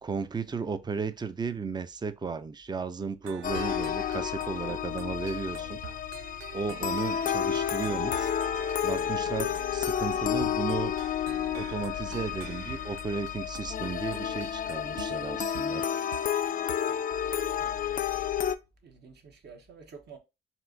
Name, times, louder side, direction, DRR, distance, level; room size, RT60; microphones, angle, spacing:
voice 1, 0.0-5.8 6.5-8.3 8.8-10.9 11.5-15.9, right 5 dB, 20° right, 0.5 m, -34 dB
sound 1, 3.2-16.3 16.7-17.0, right 12 dB, 75° right, 0.4 m, -46 dB
sound 2, 3.4-18.6, left 9 dB, 45° left, 0.4 m, -31 dB
voice 2, 17.6-18.3 18.8-20.2, right 5 dB, 55° right, 1.1 m, -50 dB
4.4 x 2.5 x 3.8 m
cardioid pair, 85°, 21 cm